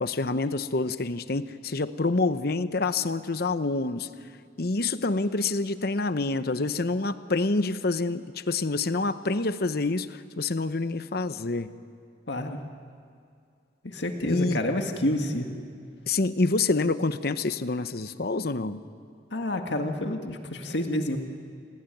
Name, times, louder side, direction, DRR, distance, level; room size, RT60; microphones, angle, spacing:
voice 1, 0.0-4.1 4.6-10.1 10.4-11.7 14.3-14.6 16.1-18.8, left 3 dB, 60° left, 12 dB, 0.9 m, -27 dB
voice 2, 12.3-12.6 13.8-15.5 19.3-21.2, left 1 dB, 75° left, 4 dB, 2.0 m, -28 dB
29.5 x 21.5 x 9.3 m, 2.3 s
head